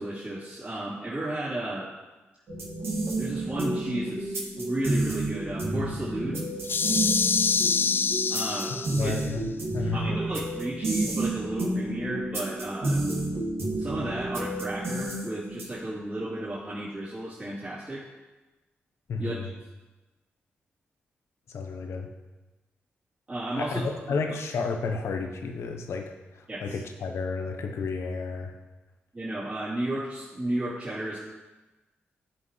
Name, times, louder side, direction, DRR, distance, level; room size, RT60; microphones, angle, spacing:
voice 1, 0.0-1.9 3.2-6.5 8.3-9.2 9.8-13.0 13.8-18.1 19.2-19.5 23.3-23.8 26.5-26.8 29.1-31.2, right 1 dB, 30° right, -12 dB, 3.2 m, -33 dB
sound 1, 2.5-15.9, right 2 dB, 70° right, 2.2 m, -30 dB
sound 2, 6.6-9.2, left 5 dB, 50° left, 0.4 m, -26 dB
voice 2, 9.0-9.5 9.7-10.2 19.1-19.5 21.5-22.1 23.6-26.0 26.6-28.5, left 4 dB, 75° left, 4 dB, 1.0 m, -31 dB
14.0 x 5.2 x 3.3 m, 1.2 s
supercardioid pair, 55°, 5 cm